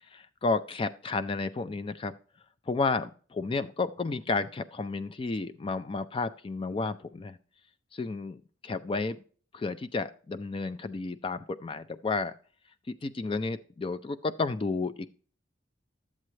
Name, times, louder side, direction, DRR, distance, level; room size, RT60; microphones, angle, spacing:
voice 1, 0.1-2.1 2.7-7.4 7.9-9.2 9.5-12.3 12.9-15.1, left 3 dB, 25° left, 12 dB, 0.3 m, -32 dB
12.0 x 7.6 x 3.2 m, 0.43 s
head